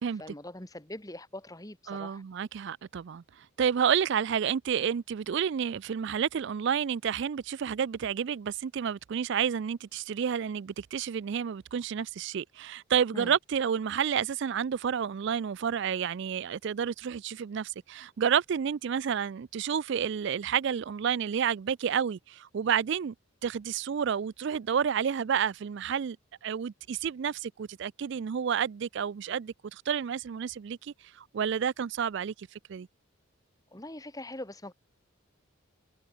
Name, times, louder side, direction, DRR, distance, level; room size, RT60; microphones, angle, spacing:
voice 1, 0.1-2.2 13.1-13.3 33.7-34.7, left 1 dB, 15° left, 2.2 m, -42 dB
voice 2, 1.9-23.1 23.4-26.2 26.4-32.9, right 7 dB, 55° right, 0.3 m, -30 dB
head